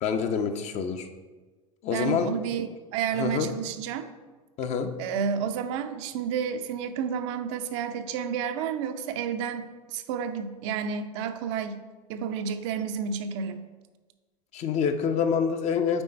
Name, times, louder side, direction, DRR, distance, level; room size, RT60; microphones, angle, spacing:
voice 1, 0.0-1.1 1.8-2.3 3.1-3.5 4.6-4.9 14.5-16.0, left 6 dB, 40° left, 7 dB, 0.7 m, -26 dB
voice 2, 1.9-2.7 2.9-4.0 5.0-11.8 12.1-13.7, right 7 dB, 50° right, 8 dB, 0.6 m, -30 dB
8.8 x 3.8 x 4.3 m, 1.3 s
figure-of-eight pair, 80°, 19 cm